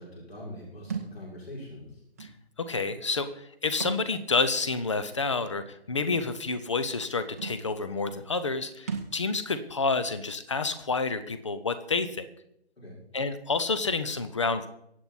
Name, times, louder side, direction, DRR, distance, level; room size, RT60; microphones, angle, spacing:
voice 1, 0.0-2.0 12.8-13.0, left 1 dB, 65° left, -4 dB, 6.0 m, -43 dB
Thump thud, 0.9-1.1 2.2-2.3 3.7-4.0 4.4-4.5 6.1-6.3 7.1-7.2 7.4-7.6 8.9-9.2, right 5 dB, 15° right, 0.8 m, -35 dB
voice 2, 2.6-12.3 13.1-14.7, left 4 dB, 25° left, 12 dB, 0.8 m, -29 dB
24.0 x 8.0 x 4.1 m, 0.77 s
figure-of-eight pair, 155°, 33 cm